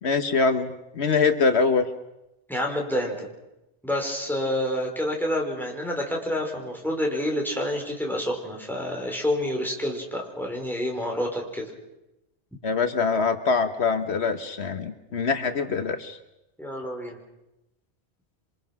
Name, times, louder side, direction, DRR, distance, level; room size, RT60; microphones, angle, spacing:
voice 1, 0.0-1.9 12.6-16.2, left 4 dB, 70° left, 9 dB, 1.4 m, -24 dB
voice 2, 2.5-3.3 3.8-11.7 16.6-17.2, left 1 dB, ahead, 0 dB, 5.0 m, -28 dB
28.5 x 25.5 x 6.1 m, 0.92 s
omnidirectional pair, 1.1 m